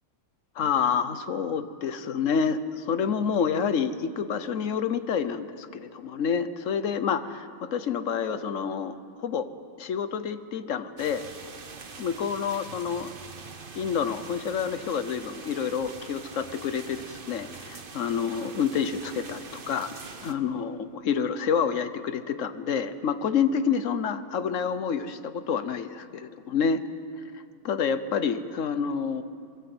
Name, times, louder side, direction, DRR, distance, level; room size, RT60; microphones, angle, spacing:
voice 1, 0.6-9.5 9.8-11.3 12.0-13.1 13.7-19.9 20.2-26.8 27.6-29.2, left 6 dB, 50° left, 11 dB, 1.0 m, -28 dB
sound 1, 11.0-20.3, right 4 dB, 35° right, 0.9 m, -44 dB
23.5 x 23.0 x 7.9 m, 2.3 s
omnidirectional pair, 2.2 m